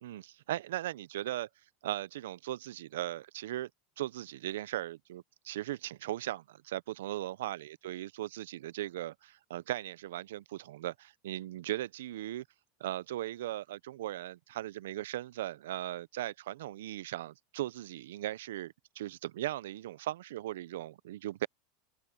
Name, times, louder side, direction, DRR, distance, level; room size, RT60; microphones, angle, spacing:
voice 1, 0.0-1.5 1.8-3.7 4.0-12.4 12.8-21.5, right 14 dB, 85° right, 0.5 m, -38 dB
supercardioid pair, 125°, 0 cm